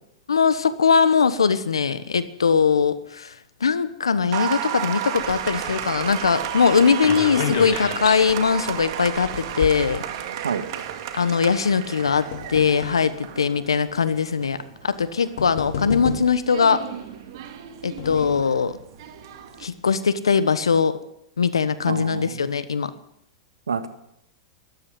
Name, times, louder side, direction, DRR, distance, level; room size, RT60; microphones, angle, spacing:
voice 1, 0.3-3.3 3.6-10.0 11.1-14.6 14.8-16.8 17.8-18.8 19.6-21.0 21.4-22.9, left 6 dB, 90° left, 14 dB, 1.2 m, -21 dB
Applause, 4.3-19.6, right 10 dB, 60° right, 2.0 m, -33 dB
sound 1, 5.2-10.6 11.5-13.1 13.9-14.0 15.0-15.1 15.4-16.6 17.5-18.6 19.0-19.1 19.4-19.5, left 7 dB, 65° left, 2.9 m, -32 dB
voice 2, 21.9-22.5 23.7-23.9, right 6 dB, 85° right, 9 dB, 1.7 m, -28 dB
13.5 x 13.0 x 7.8 m, 0.76 s
hypercardioid pair, 105°, 3 cm